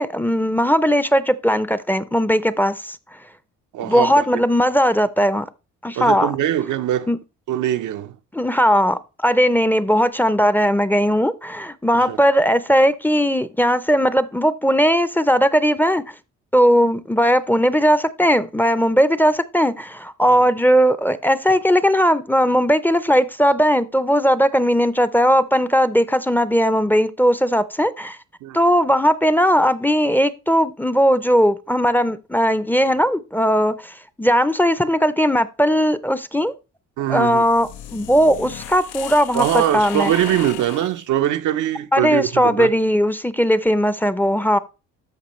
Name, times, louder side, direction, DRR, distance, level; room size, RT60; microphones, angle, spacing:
voice 1, 0.0-3.0 3.8-5.5 5.8-6.3 7.1-7.2 8.3-16.1 16.5-28.2 28.5-36.5 37.1-40.1 41.9-44.6, equal, 5° left, 0.5 m, -18 dB
voice 2, 3.7-4.3 6.0-7.1 7.5-8.2 12.1-12.2 28.4-28.6 37.0-37.4 39.3-42.7, right 12 dB, 80° right, 0.7 m, -22 dB
sound 1, 37.2-41.0, left 11 dB, 85° left, 0.8 m, -35 dB
13.0 x 5.2 x 3.1 m
cardioid pair, 90°, 30 cm